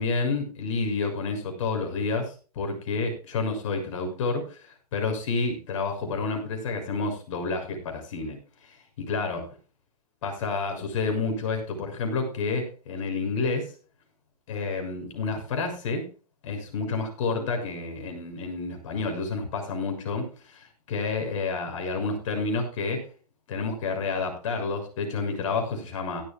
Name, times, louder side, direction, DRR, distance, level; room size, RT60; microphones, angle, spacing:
voice 1, 0.0-4.6 4.9-8.4 8.7-8.8 9.1-9.4 10.2-13.7 14.5-16.1 16.4-23.0 23.5-26.2, left 4 dB, 55° left, 4 dB, 6.7 m, -29 dB
17.0 x 12.5 x 2.4 m, 0.37 s
hypercardioid pair, 125°, 20 cm